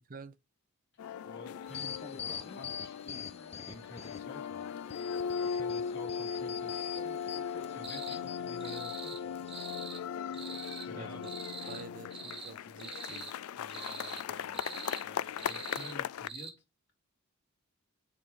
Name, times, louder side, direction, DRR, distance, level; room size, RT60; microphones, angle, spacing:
sound 1, 1.0-16.3, left 7 dB, 80° left, 0.3 m, -38 dB
voice 1, 1.2-3.3 3.6-4.7 5.3-6.8 7.6-9.5 10.8-11.2 11.6-11.8 13.6-14.6 15.0-16.6, left 1 dB, 50° left, 2.2 m, -50 dB
sound 2, 1.7-4.4 4.8-8.8 9.3-9.7, left 7 dB, 30° left, 0.5 m, -44 dB
sound 3, 7.8-8.2 8.6-9.2 9.5-10.0 10.3-10.9 11.2-11.8 12.1-12.5 12.8-13.3 13.7-14.2 14.5-15.0 15.4-15.9 16.3-16.5, right 4 dB, 25° right, 1.2 m, -44 dB
voice 2, 10.9-11.3 11.7-13.3, right 4 dB, 40° right, 0.6 m, -48 dB
6.7 x 4.7 x 3.7 m
head